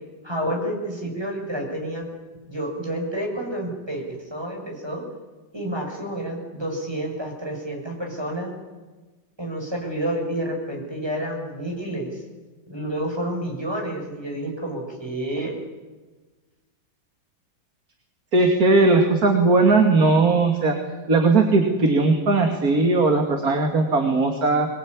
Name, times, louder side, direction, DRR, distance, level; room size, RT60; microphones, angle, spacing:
voice 1, 0.2-2.1 2.5-5.0 5.5-8.5 9.4-12.2 12.7-15.6, right 1 dB, 10° right, 1 dB, 6.5 m, -29 dB
voice 2, 18.3-20.8 21.1-24.7, right 3 dB, 45° right, 4 dB, 2.8 m, -18 dB
23.5 x 21.5 x 9.7 m, 1.3 s
omnidirectional pair, 2.2 m